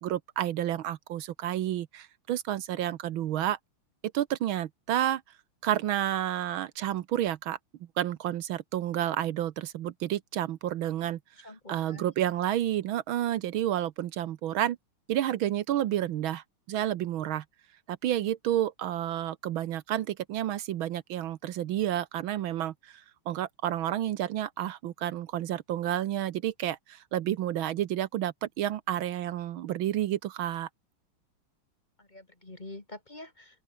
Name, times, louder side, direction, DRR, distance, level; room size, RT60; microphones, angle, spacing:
voice 1, 0.0-3.6 4.1-5.2 5.6-7.6 8.0-14.8 15.1-17.4 17.9-30.7, right 12 dB, 75° right, 1.6 m, -30 dB
voice 2, 11.4-12.1 32.0-33.6, left 2 dB, 20° left, 2.1 m, -46 dB
open air
omnidirectional pair, 2.3 m